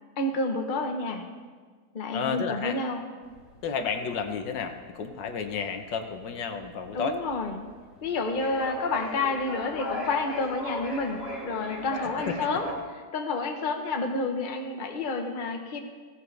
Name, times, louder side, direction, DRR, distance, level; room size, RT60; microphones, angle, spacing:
voice 1, 0.2-1.3 1.9-3.0 6.9-7.6 8.0-12.7 13.1-15.8, left 3 dB, 35° left, 3 dB, 1.0 m, -29 dB
voice 2, 2.1-2.8 3.6-7.2 12.3-12.7, left 6 dB, 85° left, 6 dB, 1.6 m, -31 dB
sound 1, 3.2-12.8, left 1 dB, 65° left, 3.7 m, -38 dB
16.0 x 14.5 x 3.4 m, 1.5 s
omnidirectional pair, 1.9 m